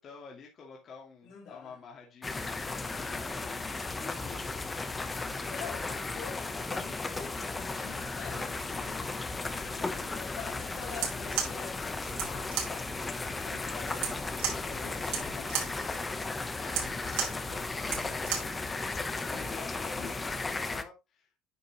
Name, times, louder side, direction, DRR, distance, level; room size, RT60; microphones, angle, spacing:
voice 1, 0.0-4.6 9.3-10.2 10.5-10.7 13.3-13.6 14.3-18.9 19.3-21.3, left 5 dB, 30° left, 2.2 m, -50 dB
voice 2, 1.2-1.8 5.4-9.2 9.9-13.0 13.3-15.5 19.3-20.2, left 7 dB, 60° left, 4.0 m, -46 dB
sound 1, 2.2-20.8, left 3 dB, 15° left, 0.8 m, -35 dB
sound 2, 10.9-18.6, right 8 dB, 85° right, 4.5 m, -36 dB
9.5 x 6.0 x 3.0 m
cardioid pair, 160°, 0 cm